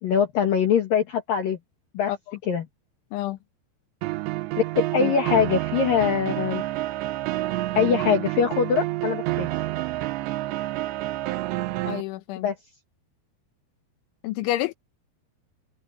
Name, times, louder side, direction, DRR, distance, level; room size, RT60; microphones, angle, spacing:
voice 1, 0.0-1.6 1.9-2.1 2.5-2.7 4.8-6.6 7.7-9.5 12.4-12.5, left 7 dB, 55° left, 3.0 m, -23 dB
sound 1, 4.0-12.0, right 18 dB, 80° right, 2.8 m, -28 dB
voice 2, 11.9-12.5 14.2-14.7, left 15 dB, 85° left, 3.4 m, -28 dB
omnidirectional pair, 5.5 m